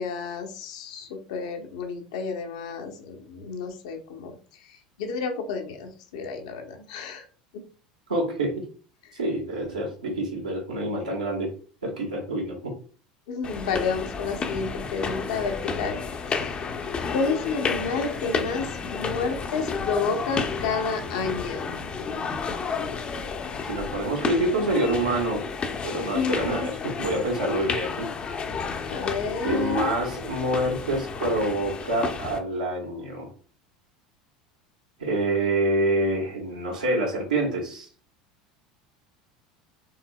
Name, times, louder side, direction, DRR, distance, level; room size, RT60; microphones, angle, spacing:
voice 1, 0.0-7.3 13.3-16.0 16.3-16.5 17.1-21.8 26.0-26.7 28.9-29.9, left 5 dB, 60° left, 4 dB, 0.8 m, -30 dB
voice 2, 8.1-8.7 9.1-11.5 11.8-12.8 22.7-22.9 23.6-25.4 25.8-28.1 29.4-33.3 35.0-37.9, right 1 dB, 80° right, -1 dB, 1.6 m, -27 dB
sound 1, 13.4-32.4, left 5 dB, 25° left, 0.6 m, -31 dB
4.6 x 3.4 x 2.3 m, 0.41 s
figure-of-eight pair, 75°, 4 cm